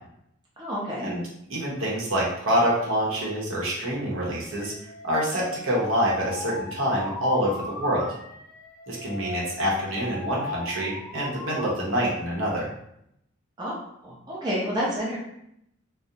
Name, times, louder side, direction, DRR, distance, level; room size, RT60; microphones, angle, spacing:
voice 1, 0.6-1.1 13.6-13.8 14.0-15.2, equal, 20° right, -6 dB, 0.5 m, -29 dB
voice 2, 1.5-4.7 5.0-8.1 8.9-12.7, equal, 70° right, -4 dB, 0.7 m, -26 dB
Alarm, 4.5-11.7 12.1-12.7, left 2 dB, 80° left, 0.4 m, -37 dB
2.4 x 2.0 x 2.7 m, 0.76 s
head